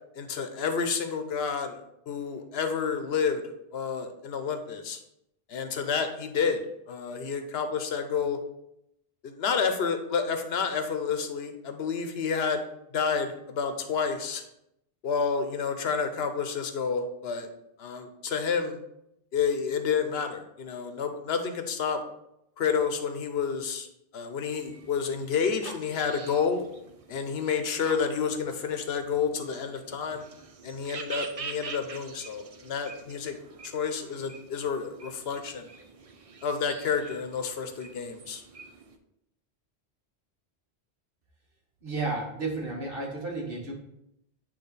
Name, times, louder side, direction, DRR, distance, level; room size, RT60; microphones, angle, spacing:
voice 1, 0.1-3.4 3.7-5.0 5.5-8.4 9.2-12.6 12.9-14.4 15.0-17.5 17.8-18.8 19.3-22.0 22.6-23.9 24.1-26.6 27.1-30.2 30.6-33.4 33.6-35.7 36.4-38.4, left 6 dB, 75° left, 7 dB, 1.0 m, -29 dB
sound 1, 24.5-39.0, right 5 dB, 45° right, 0.5 m, -46 dB
voice 2, 41.8-43.7, right 3 dB, 60° right, -2 dB, 1.7 m, -32 dB
8.5 x 3.1 x 4.0 m, 0.80 s
omnidirectional pair, 1.1 m